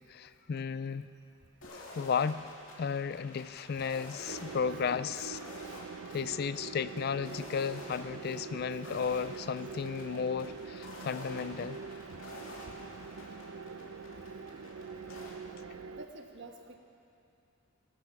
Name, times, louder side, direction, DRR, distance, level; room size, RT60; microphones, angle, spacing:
voice 1, 0.1-1.1 2.0-2.5 2.8-5.4 6.1-11.8, left 6 dB, 50° left, 15 dB, 0.3 m, -34 dB
sound 1, 1.6-15.3, left 1 dB, 65° left, 2.9 m, -50 dB
voice 2, 3.7-4.4 4.7-4.9 5.1-5.3 5.6-5.7 9.1-9.2 12.1-12.2 12.7-12.8 15.9-16.8, right 2 dB, 55° right, 3 dB, 1.3 m, -51 dB
sound 2, 4.3-16.1, right 5 dB, 85° right, 0.5 m, -44 dB
19.0 x 12.0 x 6.0 m, 2.7 s
head